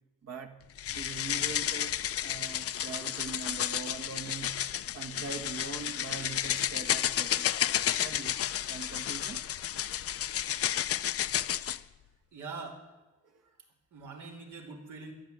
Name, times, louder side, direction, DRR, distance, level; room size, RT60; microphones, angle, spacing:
voice 1, 0.2-0.6 0.9-4.7 4.9-7.6 8.0-8.4 8.7-9.4 10.1-10.2 13.2-13.6, right 5 dB, 55° right, 6 dB, 1.8 m, -42 dB
sound 1, 0.8-11.8, left 11 dB, 50° left, 0.6 m, -32 dB
voice 2, 12.3-12.8 13.9-15.1, right 4 dB, 75° right, 1 dB, 3.3 m, -43 dB
14.0 x 11.5 x 8.2 m, 1.1 s
cardioid pair, 90°, 30 cm